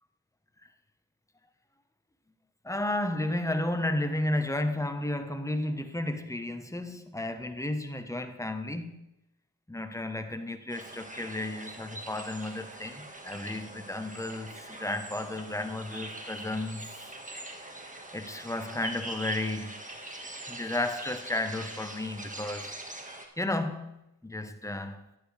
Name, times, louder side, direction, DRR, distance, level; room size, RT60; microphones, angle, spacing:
voice 1, 2.6-8.9 9.7-17.0 18.1-19.7 20.5-22.7 23.4-25.1, left 1 dB, 5° left, 1.1 m, -33 dB
sound 1, 10.7-23.3, right 1 dB, 15° right, 1.7 m, -43 dB
11.0 x 10.5 x 3.4 m
supercardioid pair, 45°, 45 cm